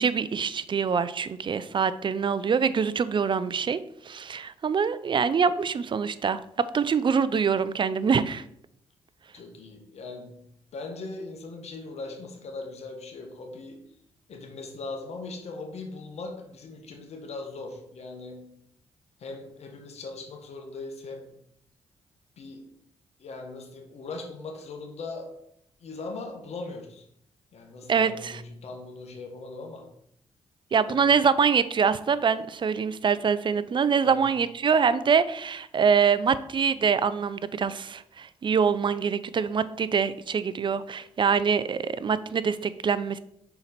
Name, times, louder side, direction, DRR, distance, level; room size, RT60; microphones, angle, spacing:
voice 1, 0.0-3.8 4.1-6.4 6.7-8.4 27.9-28.4 30.7-43.2, right 6 dB, 45° right, 15 dB, 0.5 m, -24 dB
voice 2, 9.3-10.4 10.7-13.8 14.3-18.5 19.2-21.3 22.4-22.7 23.2-25.3 25.8-27.0 27.5-29.9 30.9-31.1 34.0-34.2, left 3 dB, 65° left, 3 dB, 1.3 m, -39 dB
5.7 x 4.4 x 4.1 m, 0.73 s
supercardioid pair, 50°, 12 cm